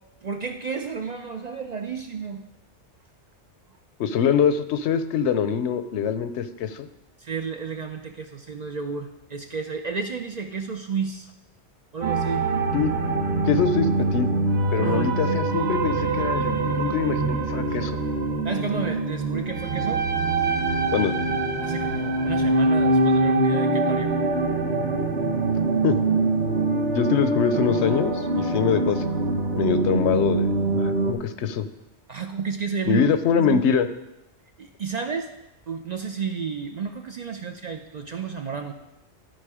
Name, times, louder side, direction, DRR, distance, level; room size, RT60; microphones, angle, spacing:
voice 1, 0.2-2.4 7.2-11.3 11.9-12.5 14.8-15.1 18.4-20.0 21.6-24.1 32.1-33.1 33.4-33.6 34.6-35.3 35.7-38.7, right 5 dB, 50° right, 5 dB, 0.5 m, -31 dB
voice 2, 4.0-6.9 12.7-12.9 13.4-14.3 14.7-18.0 20.9-21.1 25.8-26.0 26.9-29.0 29.6-31.7 32.9-33.9, left 7 dB, 80° left, 11 dB, 0.9 m, -24 dB
sound 1, 12.0-31.1, right 2 dB, 65° right, 1.2 m, -24 dB
12.5 x 4.5 x 4.8 m, 0.92 s
omnidirectional pair, 1.2 m